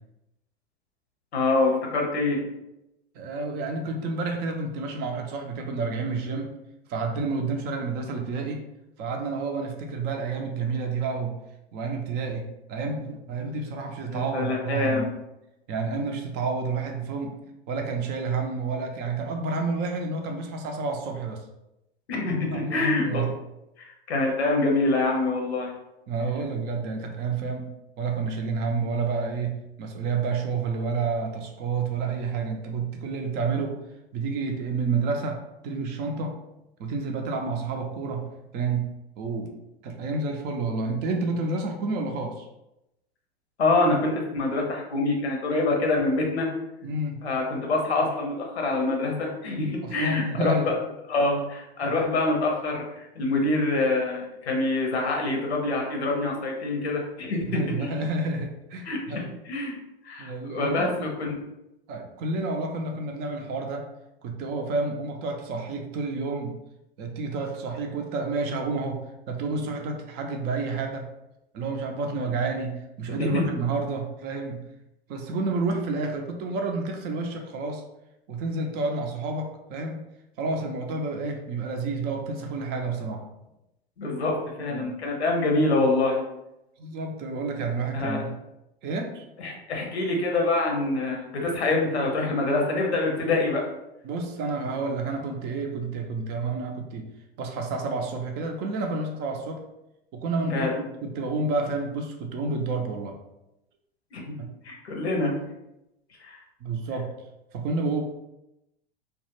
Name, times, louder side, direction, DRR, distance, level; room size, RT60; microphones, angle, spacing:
voice 1, 1.3-2.4 14.1-15.1 22.1-23.2 24.1-25.7 43.6-46.5 47.2-50.7 51.1-57.9 58.8-59.7 60.0-61.3 73.2-73.5 84.0-86.2 87.9-88.2 89.4-93.6 100.5-100.7 104.1-104.2 104.6-105.3 106.2-106.4, left 2 dB, 85° left, 0 dB, 0.8 m, -25 dB
voice 2, 3.1-6.5 6.9-8.6 9.0-11.3 11.7-15.1 15.7-17.3 17.7-21.4 22.5-23.3 26.1-27.7 28.0-33.8 34.1-36.4 36.8-38.3 38.5-38.9 39.2-39.6 39.8-42.5 46.8-47.2 49.8-50.8 51.8-51.9 57.4-59.3 60.2-61.1 61.9-63.9 64.2-66.5 67.0-71.1 71.5-74.6 75.1-77.8 78.3-80.0 80.4-83.2 84.7-84.9 86.8-88.3 88.8-89.2 91.7-91.8 94.0-97.0 97.4-99.6 100.1-103.1 104.4-104.5 106.6-107.1 107.5-108.0, right 3 dB, 35° right, 3 dB, 0.4 m, -30 dB
2.2 x 2.1 x 3.0 m, 0.89 s
hypercardioid pair, 95°, 32 cm